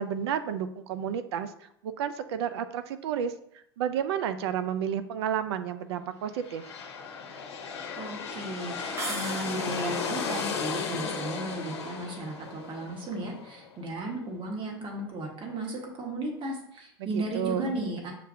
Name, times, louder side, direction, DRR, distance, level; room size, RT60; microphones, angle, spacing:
voice 1, 0.0-1.5 1.8-3.3 3.8-6.7 17.0-17.8, right 8 dB, 75° right, 11 dB, 0.4 m, -31 dB
sound 1, 6.3-14.0, left 5 dB, 85° left, 0.7 m, -35 dB
voice 2, 8.0-18.1, right 2 dB, 40° right, 0 dB, 1.4 m, -35 dB
sound 2, 9.0-10.1, right 2 dB, 20° right, 0.7 m, -37 dB
6.6 x 2.5 x 2.6 m, 0.74 s
hypercardioid pair, 85°, 14 cm